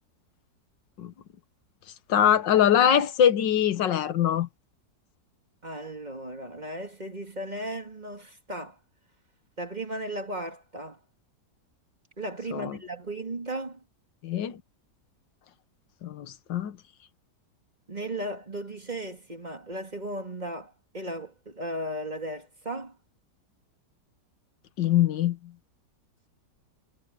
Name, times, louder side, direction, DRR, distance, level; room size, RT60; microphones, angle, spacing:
voice 1, 2.1-4.5 12.5-12.8 14.2-14.6 16.0-16.8 24.8-25.4, left 10 dB, 90° left, 1.8 m, -23 dB
voice 2, 5.6-8.8 9.6-11.0 12.2-13.8 17.9-23.0, right 1 dB, 25° right, 2.7 m, -36 dB
omnidirectional pair, 1.9 m